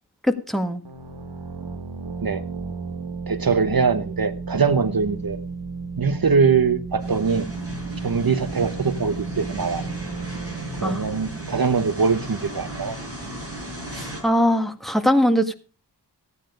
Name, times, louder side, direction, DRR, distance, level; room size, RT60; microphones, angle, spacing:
voice 1, 0.3-0.8 10.8-11.0 13.9-15.5, equal, ahead, 9 dB, 1.6 m, -21 dB
sound 1, 0.8-12.4, right 4 dB, 90° right, 1.8 m, -34 dB
voice 2, 3.3-5.4 6.0-7.5 8.0-9.8 10.7-13.0, right 5 dB, 55° right, 12 dB, 1.0 m, -22 dB
sound 2, 7.0-14.2, right 1 dB, 35° right, 7.3 m, -35 dB
16.0 x 9.2 x 5.1 m, 0.36 s
wide cardioid pair, 60°, 42 cm